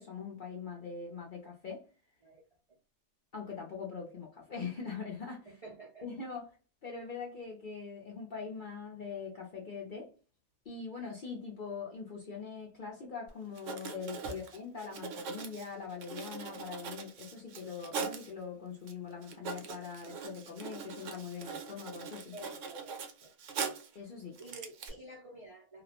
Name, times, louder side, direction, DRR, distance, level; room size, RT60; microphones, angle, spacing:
voice 1, 0.0-1.8 3.3-5.5 6.0-6.5 6.8-10.1 10.7-22.3 23.9-24.4, left 5 dB, 55° left, -1 dB, 0.5 m, -42 dB
voice 2, 5.5-6.1 14.2-14.4 22.3-23.3 24.4-25.8, right 2 dB, 50° right, -3 dB, 0.4 m, -49 dB
Writing, 13.3-13.4 13.5-18.3 18.9-19.0 19.2-24.0 24.3-24.9, right 5 dB, 75° right, 0.9 m, -41 dB
2.4 x 2.0 x 2.7 m, 0.34 s
omnidirectional pair, 1.4 m